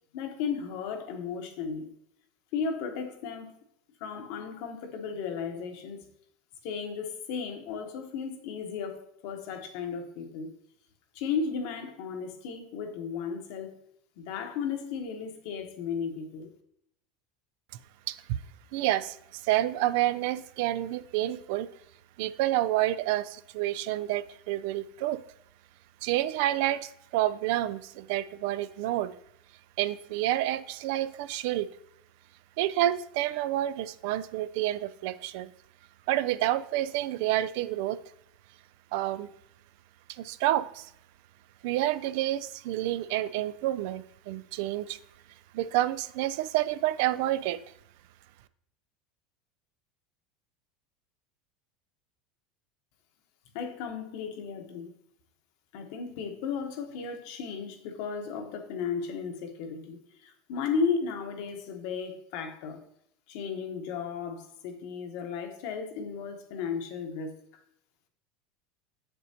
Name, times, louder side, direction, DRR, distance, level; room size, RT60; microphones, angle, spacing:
voice 1, 0.1-1.9 2.5-3.5 4.0-6.1 6.6-10.5 11.1-13.8 14.2-16.5 53.5-54.9 55.7-62.8 63.3-67.4, left 6 dB, 65° left, 5 dB, 1.1 m, -35 dB
voice 2, 18.7-21.7 22.2-25.2 26.0-29.1 29.8-31.7 32.6-35.5 36.1-38.0 38.9-39.3 40.1-40.9 41.6-45.0 45.5-47.6, right 14 dB, 70° right, 14 dB, 0.3 m, -29 dB
7.2 x 6.9 x 2.8 m, 0.74 s
supercardioid pair, 135°, 0 cm